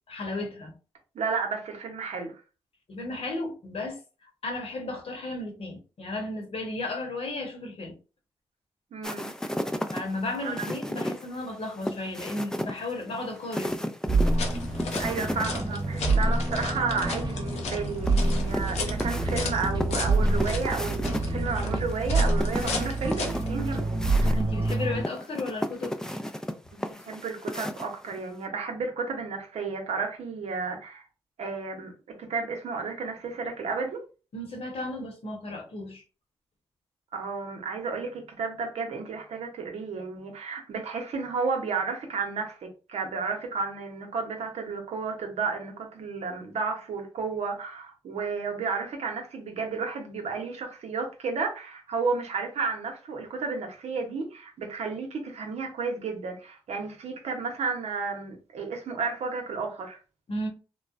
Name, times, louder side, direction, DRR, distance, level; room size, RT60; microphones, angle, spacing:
voice 1, 0.1-0.7 2.9-7.9 9.9-13.8 24.4-26.0 34.3-36.0 60.3-60.5, left 2 dB, 65° left, 0.9 m, -34 dB
voice 2, 1.1-2.4 8.9-9.3 10.4-10.7 15.0-24.4 26.7-31.0 31.4-31.9 32.2-34.0 37.1-60.0, right 4 dB, 80° right, 0.7 m, -32 dB
sound 1, 9.0-15.5 15.8-15.9 18.1-21.2 21.7-28.2, equal, 5° left, 0.4 m, -34 dB
sound 2, 14.0-25.0, right 2 dB, 45° right, 0.9 m, -27 dB
sound 3, 14.2-23.5, left 4 dB, 80° left, 0.5 m, -36 dB
3.0 x 2.0 x 2.4 m
supercardioid pair, 45°, 11 cm